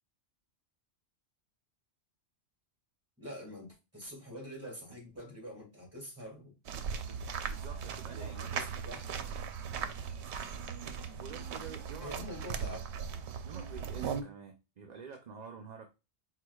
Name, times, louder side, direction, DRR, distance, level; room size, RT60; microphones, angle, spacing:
voice 1, 3.2-6.5 8.1-9.1 12.0-13.2, equal, 10° right, -3 dB, 2.4 m, -46 dB
sound 1, 6.6-14.2, right 7 dB, 75° right, 0.9 m, -38 dB
voice 2, 7.1-8.4 11.2-12.2 13.4-15.9, right 6 dB, 50° right, 4 dB, 0.6 m, -48 dB
4.7 x 4.0 x 2.3 m, 0.27 s
omnidirectional pair, 1.2 m